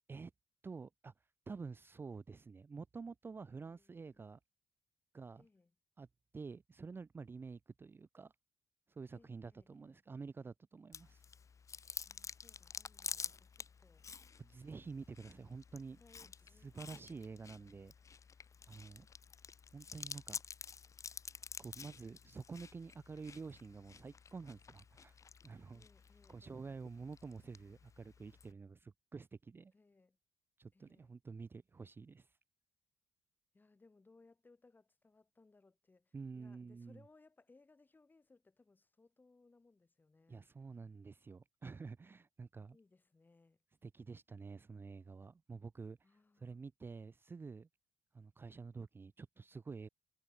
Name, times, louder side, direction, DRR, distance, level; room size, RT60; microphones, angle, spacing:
voice 1, 0.6-1.1 1.5-4.4 5.1-5.5 6.0-6.1 6.3-8.3 8.9-11.2 14.4-16.0 16.6-17.9 18.7-19.1 19.7-20.4 21.6-25.2 25.4-25.8 26.3-29.7 30.6-32.4 36.1-37.0 40.3-42.8 43.8-46.1 46.4-47.7 48.1-49.9, right 4 dB, 25° right, 0.6 m, -49 dB
voice 2, 3.5-4.3 5.4-5.7 9.1-10.0 12.0-14.1 15.7-17.7 25.7-26.8 29.7-30.2 30.7-31.2 33.5-40.4 42.7-43.6 46.0-46.6, left 3 dB, 25° left, 7.0 m, -68 dB
Chewing mastication, 10.9-28.5, left 6 dB, 40° left, 1.7 m, -50 dB
cardioid pair, 90°, 8 cm